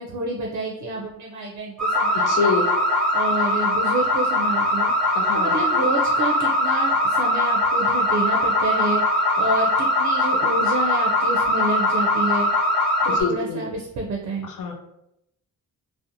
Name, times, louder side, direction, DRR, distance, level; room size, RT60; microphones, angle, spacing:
voice 1, 0.0-2.6 3.1-12.5 13.0-14.5, right 2 dB, 60° right, 0 dB, 0.4 m, -29 dB
sound 1, 1.8-13.2, left 1 dB, ahead, 0.7 m, -21 dB
voice 2, 2.3-2.7 5.1-5.6 13.2-13.6 14.4-14.7, left 4 dB, 70° left, 3 dB, 0.5 m, -25 dB
2.6 x 2.1 x 2.5 m, 0.83 s
wide cardioid pair, 170°, 32 cm